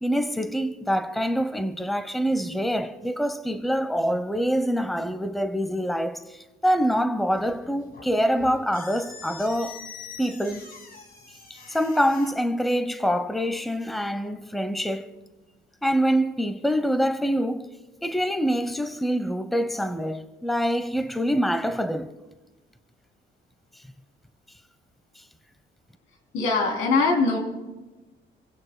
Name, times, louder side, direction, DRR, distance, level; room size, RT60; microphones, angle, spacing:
voice 1, 0.0-6.2 6.6-9.8 10.2-10.7 11.5-15.1 15.8-17.7 18.0-22.1, equal, ahead, 0.8 m, -25 dB
sound 1, 7.3-12.3, left 5 dB, 50° left, 2.3 m, -44 dB
voice 2, 26.3-27.4, left 4 dB, 90° left, 3.1 m, -22 dB
27.5 x 16.0 x 2.2 m
cardioid pair, 90°, 20 cm